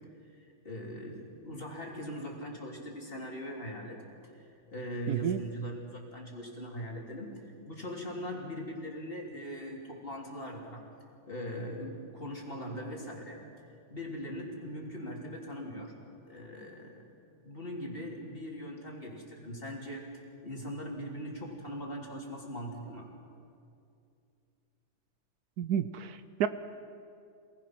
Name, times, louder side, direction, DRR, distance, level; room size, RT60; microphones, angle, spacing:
voice 1, 0.7-4.0 4.7-10.9 11.3-13.4 13.9-15.9 16.2-17.0 17.4-20.1 20.4-23.1, equal, 35° left, -1 dB, 3.5 m, -40 dB
voice 2, 5.1-5.4 25.6-26.5, right 9 dB, 70° right, 12 dB, 1.1 m, -31 dB
28.0 x 19.0 x 6.0 m, 2.5 s
omnidirectional pair, 1.8 m